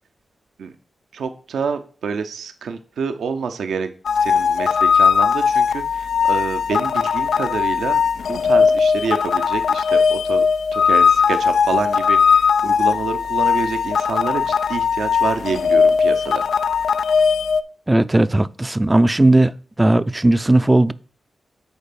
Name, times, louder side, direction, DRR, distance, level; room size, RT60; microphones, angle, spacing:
voice 1, 1.1-3.9 4.2-8.0 8.3-16.4, right 5 dB, 80° right, 0.6 m, -27 dB
sound 1, 4.1-17.6, left 6 dB, 80° left, 0.3 m, -18 dB
voice 2, 17.9-20.9, right 2 dB, 25° right, 0.4 m, -16 dB
6.9 x 4.2 x 5.8 m
supercardioid pair, 40°, 0 cm